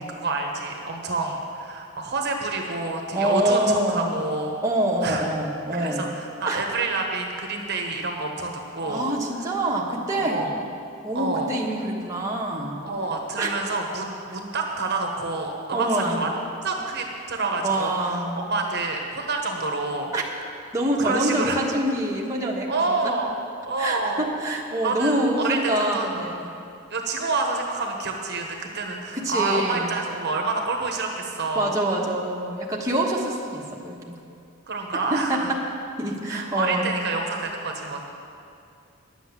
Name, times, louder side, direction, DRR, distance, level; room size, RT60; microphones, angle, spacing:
voice 1, 0.0-4.6 5.0-5.2 5.7-9.1 10.2-10.6 11.1-11.5 12.8-18.2 18.5-20.1 21.0-21.6 22.7-23.3 23.6-24.3 24.8-25.6 25.9-26.1 26.9-31.8 34.7-35.5 36.3-38.0, right 3 dB, 50° right, 1 dB, 1.2 m, -28 dB
voice 2, 3.1-4.2 4.6-6.1 6.5-6.6 8.9-10.4 11.0-12.8 13.4-13.6 15.7-16.2 17.6-18.5 20.1-20.2 20.7-22.7 23.0-23.1 23.8-26.6 29.1-30.1 31.5-34.1 34.9-35.6 36.0-36.9, right 1 dB, 15° right, -4 dB, 1.3 m, -25 dB
11.0 x 8.0 x 7.3 m, 2.5 s
head